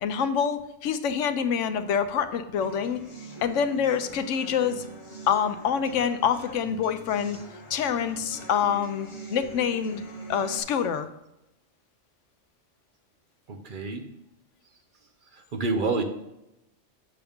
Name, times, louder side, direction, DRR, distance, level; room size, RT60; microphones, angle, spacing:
voice 1, 0.0-3.0 3.4-4.9 5.3-7.4 7.7-10.0 10.3-11.1, left 7 dB, 85° left, 10 dB, 1.0 m, -26 dB
sound 1, 2.6-10.6, right 3 dB, 45° left, 1.4 m, -43 dB
voice 2, 13.5-14.1 15.2-16.0, right 3 dB, 50° right, 5 dB, 0.9 m, -29 dB
8.6 x 6.9 x 3.6 m, 0.90 s
omnidirectional pair, 1.2 m